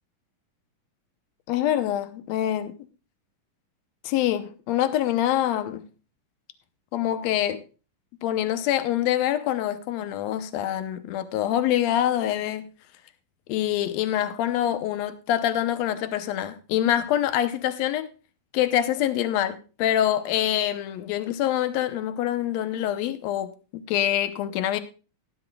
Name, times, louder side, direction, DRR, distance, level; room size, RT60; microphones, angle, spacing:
voice 1, 1.5-2.7 4.0-5.8 6.9-7.6 8.2-12.7 13.5-18.1 18.5-24.8, left 12 dB, 75° left, 1.6 m, -25 dB
17.0 x 11.5 x 2.3 m
omnidirectional pair, 4.0 m